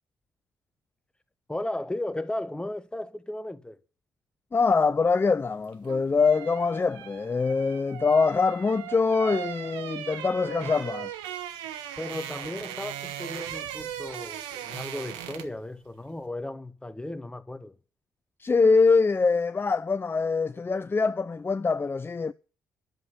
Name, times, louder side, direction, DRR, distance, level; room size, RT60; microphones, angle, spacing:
voice 1, 1.5-3.8 12.0-17.7, left 1 dB, 10° left, 1.4 m, -35 dB
voice 2, 4.5-11.1 18.4-22.3, left 4 dB, 25° left, 0.6 m, -24 dB
sound 1, 5.6-15.6 15.9-16.1, right 11 dB, 75° right, 1.2 m, -38 dB
11.0 x 7.6 x 9.7 m
hypercardioid pair, 45°, 8 cm